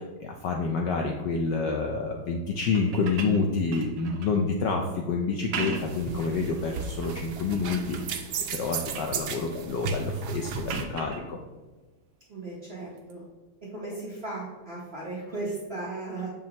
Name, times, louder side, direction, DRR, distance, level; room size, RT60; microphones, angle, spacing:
voice 1, 0.0-8.2 8.6-11.4, left 4 dB, 75° left, 2 dB, 1.0 m, -28 dB
sound 1, 2.6-4.4 5.3-6.1 6.6-7.2 7.7-8.2 8.5-9.2 10.7-11.2 13.0-13.1, right 5 dB, 75° right, 1.4 m, -38 dB
sound 2, 5.7-10.8, right 5 dB, 90° right, 0.8 m, -34 dB
voice 2, 12.3-13.3 13.6-16.3, right 2 dB, 50° right, -5 dB, 0.7 m, -36 dB
7.3 x 5.3 x 2.8 m, 1.3 s
omnidirectional pair, 2.4 m